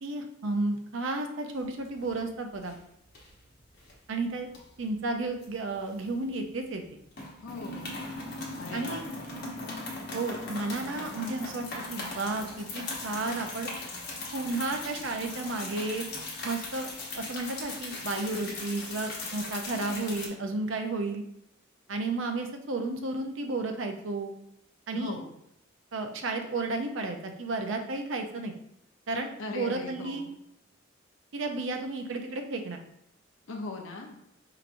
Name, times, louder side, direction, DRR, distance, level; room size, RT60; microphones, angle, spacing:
voice 1, 0.0-2.8 4.1-4.5 4.8-6.8 8.7-9.0 10.1-13.7 14.3-16.0 16.4-21.2 21.9-24.3 24.9-25.2 25.9-28.5 29.1-30.3 31.3-32.8, right 2 dB, 70° right, 5 dB, 0.5 m, -32 dB
sound 1, 1.6-2.3 2.5-2.8 3.1-3.9 4.5-6.4 6.7-6.9 7.1-20.3, left 2 dB, 55° left, 1.0 m, -39 dB
voice 2, 7.4-8.0 8.6-9.0 19.6-20.2 24.9-25.3 29.4-30.3 33.5-34.2, left 3 dB, 85° left, 1 dB, 0.6 m, -39 dB
4.7 x 2.9 x 2.5 m, 0.78 s
head